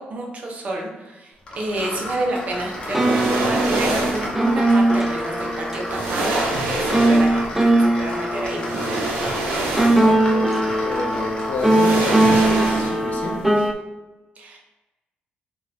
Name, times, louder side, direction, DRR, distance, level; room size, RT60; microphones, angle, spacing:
voice 1, 0.0-7.6 7.8-8.8 14.4-14.6, right 1 dB, 45° right, 0 dB, 0.7 m, -29 dB
sound 1, 1.5-12.6, left 1 dB, 30° left, 0.9 m, -33 dB
sound 2, 2.7-13.7, right 1 dB, 5° right, 0.3 m, -20 dB
sound 3, 2.8-4.4 5.4-5.5 5.9-7.5 8.6-10.3 10.6-10.8 11.6-13.2 13.4-13.6, right 2 dB, 90° right, 0.7 m, -26 dB
voice 2, 9.7-13.7, left 3 dB, 65° left, 1 dB, 0.6 m, -31 dB
3.1 x 2.5 x 3.1 m, 1.1 s
cardioid pair, 95°, 3 cm